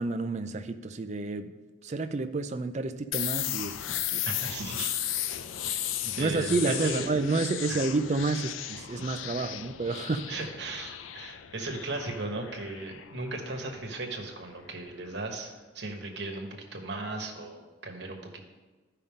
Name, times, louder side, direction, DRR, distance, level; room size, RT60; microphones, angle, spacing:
voice 1, 0.0-1.5 1.8-4.2 6.0-10.3, right 3 dB, 35° right, 0.4 m, -30 dB
sound 1, 3.1-14.7, left 11 dB, 90° left, 0.4 m, -35 dB
voice 2, 4.2-4.9 5.7-5.9 6.2-7.2 7.7-7.9 9.4-9.5 10.3-18.4, right 2 dB, 60° right, 1.3 m, -37 dB
13.5 x 5.6 x 3.7 m
head